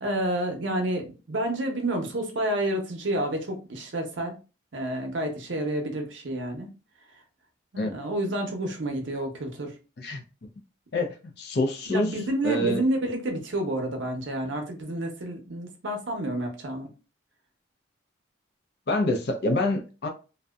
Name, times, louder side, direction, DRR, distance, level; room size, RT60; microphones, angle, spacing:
voice 1, 0.0-4.4 4.7-6.7 7.7-9.7 11.9-16.9, right 1 dB, 65° right, 0.7 m, -29 dB
voice 2, 10.9-12.1 12.4-12.8 18.9-20.1, left 1 dB, 55° left, 0.5 m, -26 dB
2.6 x 2.1 x 2.3 m
head